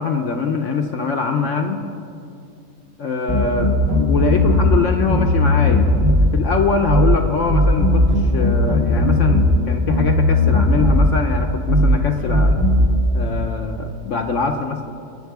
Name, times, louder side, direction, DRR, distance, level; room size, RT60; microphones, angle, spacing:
voice 1, 0.0-1.8 3.0-5.9 6.2-12.6 13.1-14.8, left 5 dB, 65° left, 4 dB, 1.0 m, -23 dB
sound 1, 3.3-4.8 5.1-6.3 6.9-7.2 7.5-9.6 9.9-11.1 11.7-12.0 12.3-12.9, left 1 dB, 60° right, 2.7 m, -16 dB
21.0 x 7.2 x 4.7 m, 2.5 s
omnidirectional pair, 1.5 m